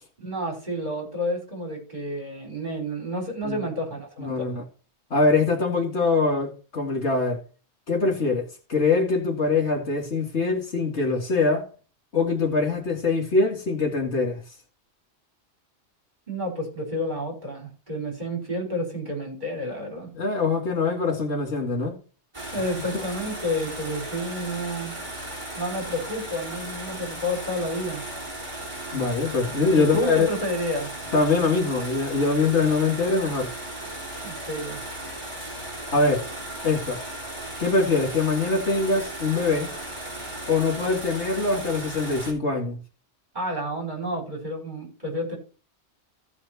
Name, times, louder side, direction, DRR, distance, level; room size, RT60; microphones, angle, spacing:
voice 1, 0.2-4.6 16.3-20.1 22.5-25.0 25.5-28.1 29.7-30.9 34.2-34.8 43.3-45.4, equal, 40° right, 4.0 m, -30 dB
voice 2, 4.2-4.6 5.1-7.4 7.9-11.7 12.1-14.4 20.2-21.9 28.9-30.3 31.1-33.5 35.9-36.3 36.6-37.0 37.6-39.7 40.5-42.8, left 3 dB, 75° left, 2.4 m, -23 dB
sound 1, 22.3-42.3, right 1 dB, 25° right, 3.2 m, -36 dB
14.5 x 5.0 x 4.2 m
omnidirectional pair, 1.2 m